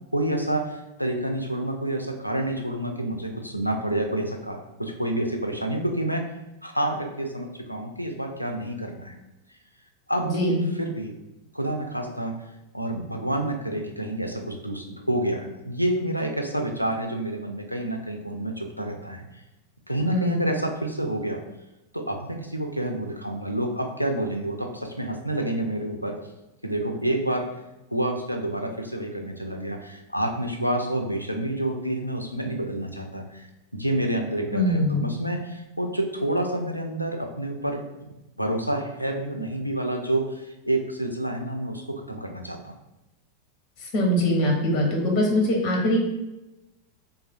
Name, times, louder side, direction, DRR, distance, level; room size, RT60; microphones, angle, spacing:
voice 1, 0.1-6.2 6.6-9.2 10.1-11.2 11.5-12.4 12.7-19.3 19.9-21.4 21.9-26.2 26.6-27.5 27.9-37.8 38.4-42.7, right 1 dB, 90° left, 3 dB, 0.3 m, -28 dB
voice 2, 10.2-10.6 20.1-20.4 34.5-35.0 43.9-46.0, equal, 40° left, 0 dB, 0.6 m, -22 dB
3.1 x 2.4 x 2.4 m, 0.97 s
figure-of-eight pair, 90°, 0 cm